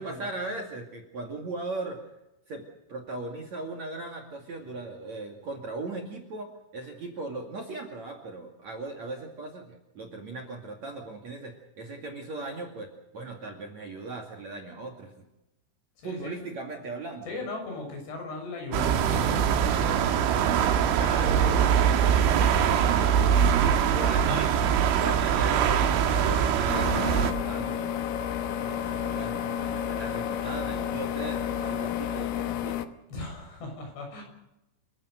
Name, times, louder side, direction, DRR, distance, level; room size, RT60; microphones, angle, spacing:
voice 1, 0.0-2.0 2.5-2.6 2.9-15.2 16.0-17.4 20.9-23.2 23.6-24.6 25.0-28.1 28.7-32.9, right 3 dB, 45° right, 2 dB, 3.0 m, -38 dB
voice 2, 16.0-16.4 17.3-21.4 33.1-34.2, left 2 dB, 60° left, 2 dB, 8.9 m, -39 dB
sound 1, 18.7-27.3, right 8 dB, 75° right, 4.0 m, -23 dB
Wind instrument woodwind instrument, 26.1-32.2, left 2 dB, 40° left, 1.6 m, -38 dB
sound 2, 26.7-32.9, left 12 dB, 75° left, 3.5 m, -31 dB
29.5 x 16.0 x 6.7 m, 0.89 s
omnidirectional pair, 5.6 m